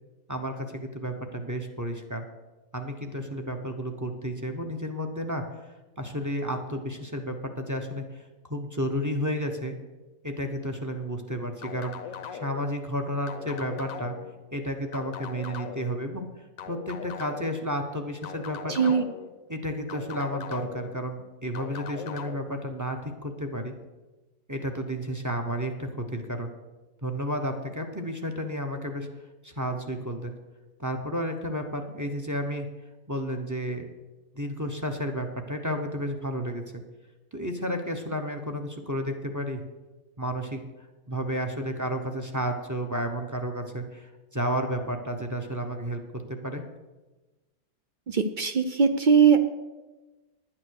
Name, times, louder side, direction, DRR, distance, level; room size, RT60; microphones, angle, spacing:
voice 1, 0.3-2.2 2.7-5.4 6.0-8.2 8.5-9.8 10.2-11.9 12.3-14.1 14.5-16.3 16.7-18.9 19.5-23.7 24.5-26.5 27.0-29.1 29.4-30.3 30.8-32.7 33.1-33.9 34.3-36.8 37.3-39.6 40.2-40.6 41.1-46.6, equal, 15° right, 5 dB, 0.7 m, -32 dB
sound 1, 11.6-12.7 13.3-14.3 14.9-16.0 16.6-17.6 18.2-19.3 19.9-20.9 21.5-22.4, left 8 dB, 70° left, 1.2 m, -39 dB
voice 2, 18.7-19.0 48.1-49.4, right 6 dB, 60° right, 8 dB, 0.5 m, -20 dB
10.0 x 9.0 x 6.5 m, 1.2 s
omnidirectional pair, 1.6 m